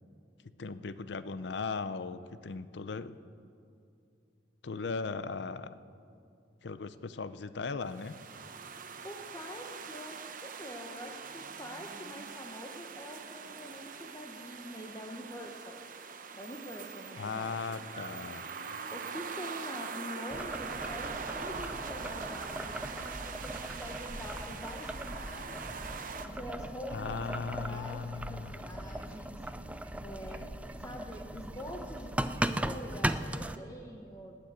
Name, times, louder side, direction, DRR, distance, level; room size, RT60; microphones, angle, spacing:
voice 1, 0.6-3.2 4.6-5.8 6.6-8.2 17.1-18.5 26.9-28.6, left 4 dB, 70° left, 14 dB, 0.6 m, -38 dB
sound 1, 7.9-26.2, right 5 dB, 50° right, 0.8 m, -43 dB
voice 2, 9.0-15.8 16.3-17.8 18.9-25.8 26.3-27.2 27.5-29.4 30.0-30.5 30.8-34.3, equal, 20° left, 1 dB, 0.9 m, -45 dB
sound 2, 17.0-32.7, right 1 dB, 85° right, 1.1 m, -57 dB
Boiling, 20.3-33.6, right 1 dB, 10° right, 0.4 m, -38 dB
19.5 x 6.8 x 8.6 m, 2.5 s
head